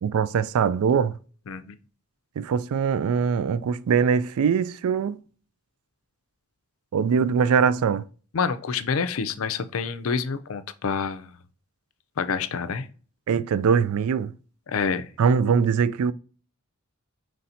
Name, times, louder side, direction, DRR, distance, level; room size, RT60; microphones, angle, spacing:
voice 1, 0.0-1.2 2.4-5.2 6.9-8.0 13.3-14.3 15.2-16.1, right 6 dB, 80° right, 0.3 m, -22 dB
voice 2, 8.3-11.3 12.2-12.9 14.7-15.1, left 5 dB, 70° left, 0.5 m, -27 dB
5.6 x 3.2 x 2.7 m
head